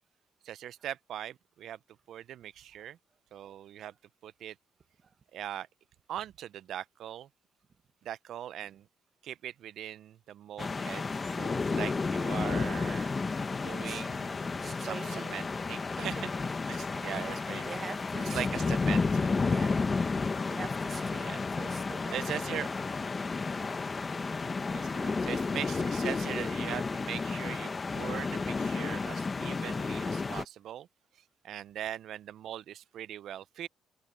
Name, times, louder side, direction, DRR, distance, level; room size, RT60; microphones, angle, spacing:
voice 1, 0.4-1.8 2.1-3.0 3.3-3.9 4.2-4.6 5.3-5.7 6.1-7.3 8.0-8.9 9.2-11.0 11.4-13.1 13.6-14.4 14.8-16.2 16.7-17.7 18.3-19.3 21.2-21.4 22.1-22.7 24.7-30.9 31.4-33.7, right 11 dB, 65° right, 0.4 m, -40 dB
sound 1, 10.6-30.5, left 4 dB, 25° left, 0.9 m, -32 dB
voice 2, 14.6-15.5 16.0-16.1 16.4-16.5 16.9-17.3 17.6-18.8 19.4-19.8 20.5-22.5, right 6 dB, 35° right, 1.0 m, -45 dB
open air
cardioid pair, 145°, 0 cm